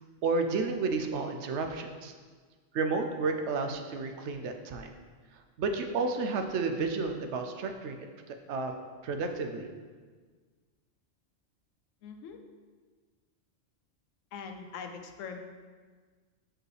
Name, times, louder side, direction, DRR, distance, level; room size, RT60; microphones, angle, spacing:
voice 1, 0.2-2.1 2.7-4.9 5.6-8.7 9.0-9.7, right 4 dB, 70° right, 5 dB, 0.8 m, -31 dB
voice 2, 12.0-12.4 14.3-15.4, left 6 dB, 85° left, 5 dB, 1.0 m, -42 dB
6.2 x 4.9 x 3.2 m, 1.5 s
omnidirectional pair, 1.3 m